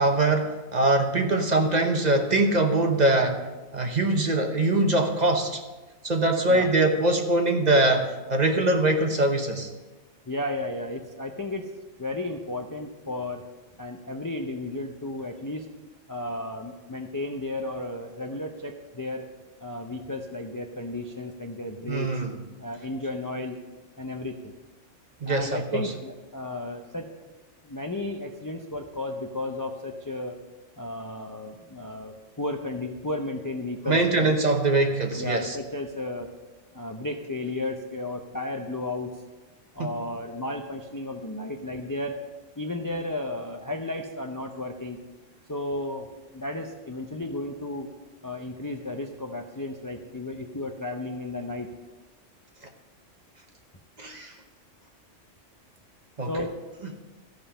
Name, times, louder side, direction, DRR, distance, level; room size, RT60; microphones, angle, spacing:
voice 1, 0.0-3.4 3.7-5.6 6.0-9.7 21.9-22.3 25.2-25.9 33.8-35.6 39.8-39.9 54.0-54.3 56.2-56.3, right 2 dB, 40° right, 4 dB, 0.9 m, -23 dB
voice 2, 10.3-11.7 12.0-13.4 13.8-15.7 16.1-19.3 19.6-22.1 22.6-23.6 24.0-24.5 25.3-27.1 27.6-30.4 30.8-34.3 35.2-36.3 36.7-39.1 39.7-42.2 42.6-45.0 45.5-47.9 48.2-51.7 56.3-56.6, left 2 dB, 25° left, 3 dB, 0.5 m, -33 dB
14.5 x 5.5 x 5.6 m, 1.2 s
omnidirectional pair, 1.3 m